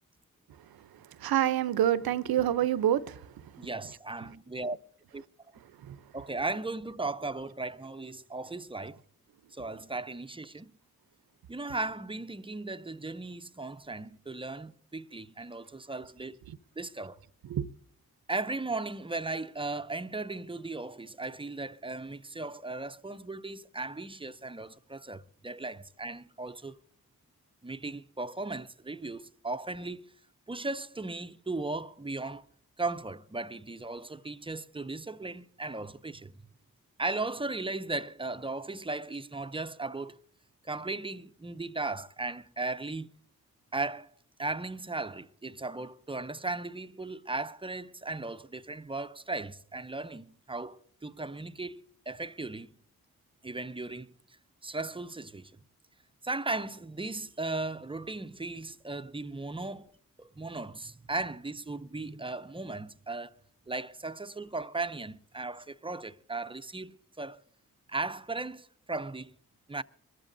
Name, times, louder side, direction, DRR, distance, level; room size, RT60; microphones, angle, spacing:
voice 1, 1.2-3.2 3.8-3.9 5.8-6.0 17.4-17.6, right 11 dB, 70° right, 0.7 m, -27 dB
voice 2, 3.6-4.8 5.1-5.2 5.5-5.6 6.1-9.0 9.5-10.7 11.5-16.4 16.8-17.2 18.3-26.8 27.6-30.1 30.5-32.5 32.8-36.4 37.0-40.2 40.6-43.1 43.7-44.1 44.4-52.8 53.4-54.1 54.6-55.6 56.2-59.9 60.2-63.3 63.7-67.4 67.9-69.3 69.7-69.8, right 3 dB, 15° right, 0.6 m, -37 dB
22.5 x 14.0 x 2.7 m
supercardioid pair, 45°, 38 cm